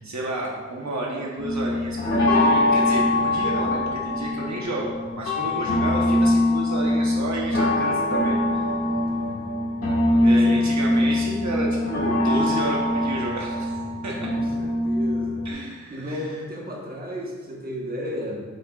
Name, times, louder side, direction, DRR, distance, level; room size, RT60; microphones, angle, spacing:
voice 1, 0.0-8.4 10.2-13.8 14.0-14.3 15.4-16.3, right 1 dB, 60° right, -2 dB, 1.0 m, -31 dB
sound 1, 1.4-15.5, left 1 dB, 45° left, 1.6 m, -23 dB
voice 2, 5.3-5.8 9.0-9.5 10.3-10.6 14.2-15.4 15.9-18.4, equal, 30° right, -3 dB, 1.2 m, -35 dB
7.7 x 6.7 x 2.4 m, 1.5 s
wide cardioid pair, 125°, 32 cm